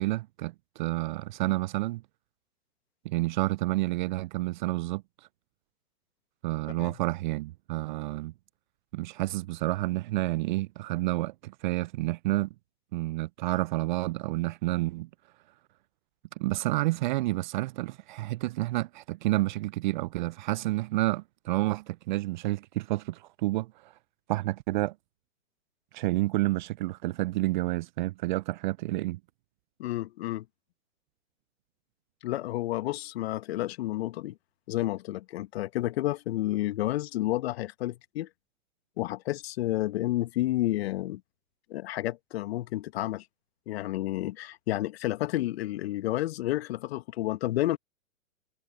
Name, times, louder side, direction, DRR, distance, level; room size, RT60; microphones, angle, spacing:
voice 1, 0.0-2.0 3.0-5.0 6.4-8.3 8.9-12.5 12.9-15.1 16.4-23.9 24.3-24.9 25.9-29.2, right 19 dB, 35° right, 0.6 m, -29 dB
voice 2, 29.8-30.4 32.2-34.3 34.7-38.3 39.0-41.2 41.7-43.2 43.7-47.8, left 15 dB, 50° left, 1.7 m, -30 dB
hypercardioid pair, 120°, 40 cm